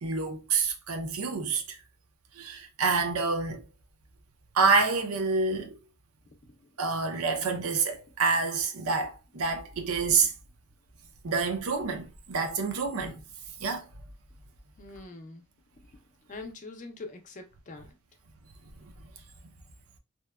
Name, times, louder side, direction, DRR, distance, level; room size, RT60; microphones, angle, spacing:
voice 1, 0.0-1.8 2.4-3.6 4.5-5.8 6.8-10.3 11.2-13.2 13.6-13.9 18.8-18.9, right 4 dB, 80° right, 0.6 m, -27 dB
voice 2, 14.8-15.4 16.3-17.9, left 3 dB, 35° left, 0.4 m, -43 dB
2.8 x 2.1 x 2.2 m
head